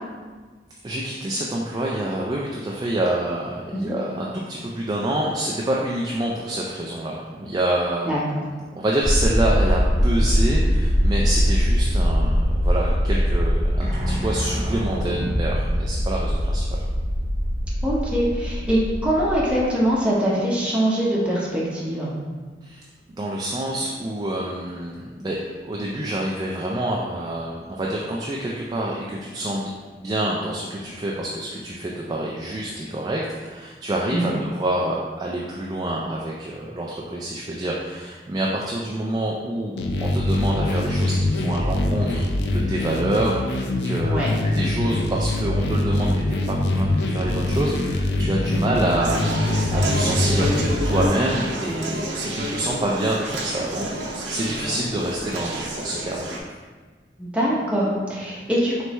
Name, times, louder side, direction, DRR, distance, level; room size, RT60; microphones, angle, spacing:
voice 1, 0.8-8.2 8.7-16.6 22.6-22.8 23.2-25.4 25.6-56.3, right 1 dB, 20° right, -3 dB, 0.3 m, -27 dB
sound 1, 9.0-19.6, equal, 40° right, 0.7 m, -22 dB
voice 2, 17.8-22.2 34.1-34.2 44.1-44.3 48.5-48.6 57.2-58.8, equal, 5° right, -6 dB, 0.8 m, -23 dB
sound 2, 39.8-51.1, left 1 dB, 65° left, 0.4 m, -23 dB
Conversation, 49.0-56.4, right 1 dB, 85° right, 0.7 m, -29 dB
4.5 x 3.3 x 3.1 m, 1.4 s
head